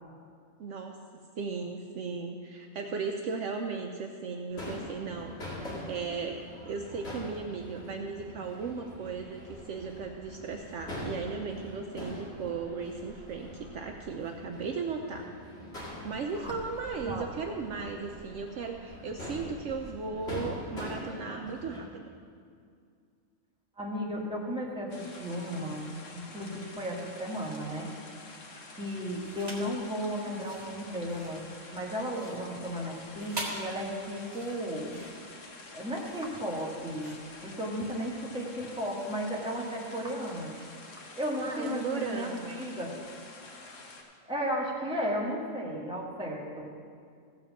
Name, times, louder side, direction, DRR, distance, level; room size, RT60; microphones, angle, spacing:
voice 1, 0.6-1.0 1.4-15.3 16.0-22.0 41.4-42.6, right 5 dB, 65° right, 3 dB, 0.9 m, -36 dB
Crowd / Fireworks, 4.5-21.8, left 1 dB, 50° left, 2.6 m, -43 dB
voice 2, 23.8-25.8 26.1-27.9 28.7-35.0 35.7-37.1 37.4-40.6 41.1-42.9 44.3-46.7, equal, 5° right, -4 dB, 1.7 m, -34 dB
sound 1, 24.9-44.0, left 3 dB, 65° left, 1.5 m, -48 dB
sound 2, 29.2-29.8 30.3-38.1, right 2 dB, 30° right, 1.8 m, -44 dB
15.5 x 5.2 x 7.1 m, 2.2 s
omnidirectional pair, 1.4 m